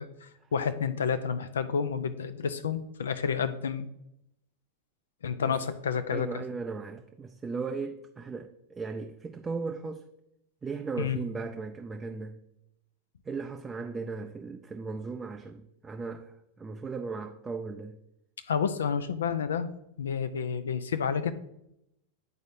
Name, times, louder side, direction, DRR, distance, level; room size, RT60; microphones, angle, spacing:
voice 1, 0.0-3.9 5.2-6.4 11.0-11.2 18.5-19.7 20.0-21.3, left 6 dB, 65° left, 0.4 m, -30 dB
voice 2, 6.1-10.0 10.6-12.4 13.3-18.0, right 4 dB, 15° right, 0.4 m, -37 dB
10.0 x 4.1 x 2.7 m
figure-of-eight pair, 90°, 0 cm